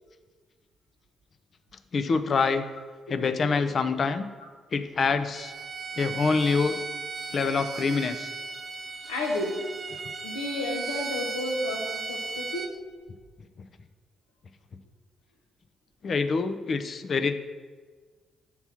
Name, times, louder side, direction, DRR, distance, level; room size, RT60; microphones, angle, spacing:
voice 1, 1.9-2.6 3.1-4.3 4.7-5.5 6.0-6.8 7.3-8.3 16.0-17.3, left 4 dB, 50° left, 10 dB, 0.5 m, -25 dB
Bowed string instrument, 5.3-12.7, right 4 dB, 45° right, 0.7 m, -36 dB
voice 2, 9.1-9.6 10.2-12.7, left 1 dB, 90° left, 0 dB, 1.0 m, -31 dB
5.7 x 4.6 x 5.7 m, 1.5 s
hypercardioid pair, 45°, 0 cm